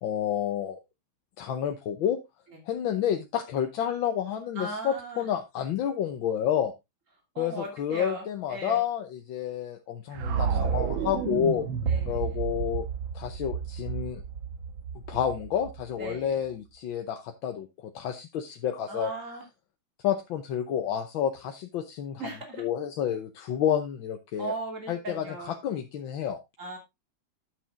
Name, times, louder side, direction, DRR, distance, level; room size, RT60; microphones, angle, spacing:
voice 1, 0.0-0.8 1.4-2.2 2.7-6.7 7.4-11.7 12.1-12.9 13.1-14.2 15.1-19.1 20.0-22.2 22.6-24.5 24.9-26.4, left 9 dB, 85° left, 5 dB, 1.7 m, -30 dB
voice 2, 4.6-5.2 7.3-8.2 8.5-8.8 11.9-12.4 16.0-16.4 18.9-19.4 22.2-22.6 24.4-25.5 26.6-26.8, right 2 dB, 40° right, 2 dB, 3.3 m, -37 dB
sound 1, 10.1-16.2, right 7 dB, 85° right, 1.9 m, -31 dB
11.5 x 6.4 x 3.6 m, 0.22 s
omnidirectional pair, 2.1 m